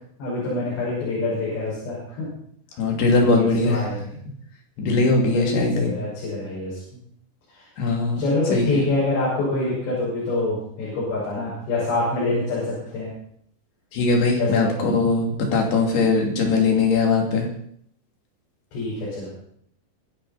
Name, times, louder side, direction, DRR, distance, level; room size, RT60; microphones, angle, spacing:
voice 1, 0.2-2.3 3.1-4.1 4.8-6.8 7.5-7.7 8.2-13.1 14.3-15.0 18.7-19.3, left 2 dB, 85° left, -7 dB, 8.3 m, -26 dB
voice 2, 2.8-3.9 4.8-5.9 7.8-8.2 8.5-8.9 13.9-17.5, left 3 dB, 70° left, 1 dB, 5.0 m, -20 dB
25.0 x 10.5 x 4.3 m, 0.67 s
omnidirectional pair, 4.9 m